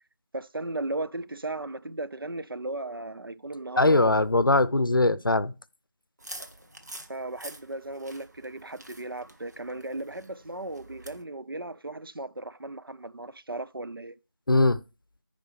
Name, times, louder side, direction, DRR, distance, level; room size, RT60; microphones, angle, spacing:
voice 1, 0.3-4.1 7.1-14.2, right 2 dB, 85° right, 0.6 m, -36 dB
voice 2, 3.8-5.5 14.5-14.8, left 2 dB, 70° left, 0.7 m, -21 dB
sound 1, 6.2-11.2, right 1 dB, 50° right, 1.2 m, -47 dB
14.5 x 5.2 x 3.3 m
figure-of-eight pair, 175°, 12 cm